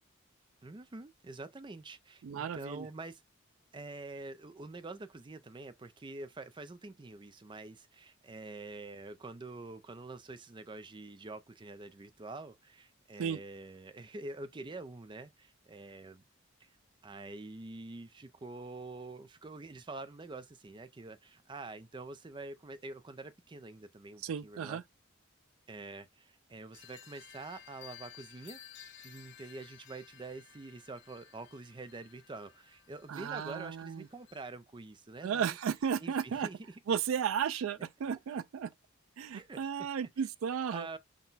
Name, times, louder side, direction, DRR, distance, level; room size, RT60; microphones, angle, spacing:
voice 1, 0.6-3.2 3.7-16.2 16.6-16.7 17.0-24.8 25.7-28.6 29.0-35.6 36.0-36.8 39.3-39.7 40.2-40.3 40.7-41.0, right 2 dB, 25° right, 0.4 m, -46 dB
voice 2, 2.2-2.9 13.2-13.4 24.2-24.8 33.1-34.1 35.2-36.5 36.9-38.7 39.2-40.9, right 7 dB, 85° right, 0.4 m, -34 dB
sound 1, 26.7-34.4, left 9 dB, 60° left, 1.1 m, -55 dB
6.0 x 2.1 x 3.9 m
head